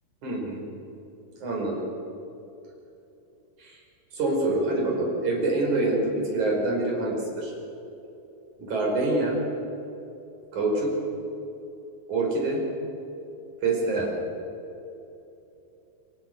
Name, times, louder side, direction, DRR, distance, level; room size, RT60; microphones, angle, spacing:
voice 1, 0.2-0.6 1.4-1.8 3.6-3.8 4.1-7.5 8.6-9.4 10.5-10.9 12.1-12.6 13.6-14.1, right 2 dB, 40° right, -1 dB, 6.4 m, -26 dB
27.0 x 24.0 x 6.3 m, 3.0 s
omnidirectional pair, 5.7 m